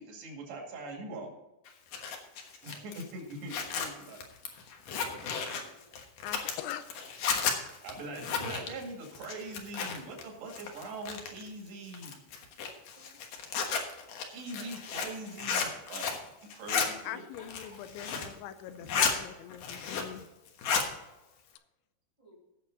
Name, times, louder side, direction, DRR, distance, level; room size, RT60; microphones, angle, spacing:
voice 1, 0.0-1.3 2.6-4.2 7.8-12.1 14.3-16.2 16.5-17.2 18.8-19.0, right 2 dB, 70° right, 1 dB, 4.5 m, -42 dB
Zipper (clothing), 1.7-10.2 10.5-11.5 11.9-16.3 16.5-16.9 17.3-18.4 18.7-19.2 19.5-20.2 20.5-20.9, left 6 dB, 65° left, 2.4 m, -33 dB
voice 2, 5.0-5.9 13.0-13.2 17.4-18.1 22.2-22.4, equal, 25° right, -3 dB, 0.6 m, -55 dB
voice 3, 6.2-6.9 17.0-20.3, left 11 dB, 85° left, 10 dB, 3.0 m, -42 dB
17.0 x 6.8 x 4.0 m, 1.0 s
omnidirectional pair, 5.2 m